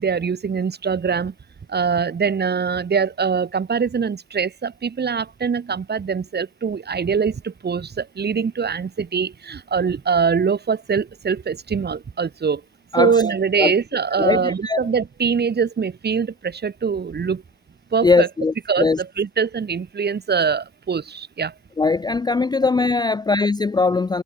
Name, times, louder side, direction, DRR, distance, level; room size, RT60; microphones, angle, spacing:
voice 1, 0.0-1.3 1.7-12.6 13.0-17.4 17.9-18.3 18.7-21.5, right 6 dB, 35° right, 1.5 m, -23 dB
voice 2, 14.2-14.8 18.0-19.0 21.8-24.2, left 4 dB, 15° left, 0.4 m, -20 dB
cardioid pair, 90°, 30 cm